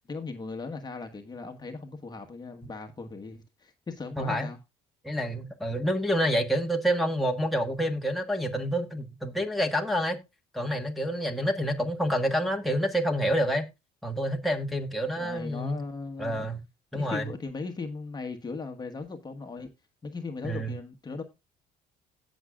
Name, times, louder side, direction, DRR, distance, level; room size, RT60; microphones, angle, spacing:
voice 1, 0.0-4.6 15.2-16.4 16.9-19.7 20.0-21.2, left 4 dB, 25° left, 1.3 m, -38 dB
voice 2, 4.2-4.5 5.0-10.2 10.5-13.6 14.0-15.8 16.2-16.6 16.9-17.3 20.4-20.8, equal, ahead, 1.5 m, -28 dB
17.0 x 6.3 x 2.4 m
cardioid pair, 110°, 17 cm